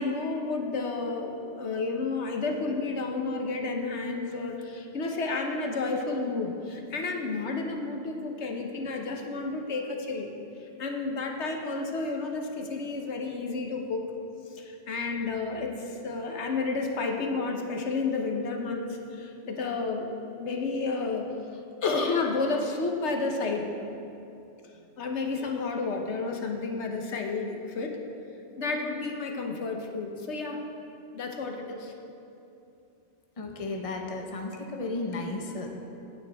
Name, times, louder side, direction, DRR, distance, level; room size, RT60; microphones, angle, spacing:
voice 1, 0.0-10.3 10.8-14.0 14.5-20.1 20.4-21.3 21.8-23.7 25.0-28.0 28.6-30.6 31.1-31.9, left 3 dB, 75° left, 3 dB, 1.2 m, -31 dB
voice 2, 33.4-35.7, left 2 dB, 30° left, 2 dB, 1.0 m, -34 dB
16.0 x 9.3 x 3.4 m, 2.8 s
omnidirectional pair, 1.2 m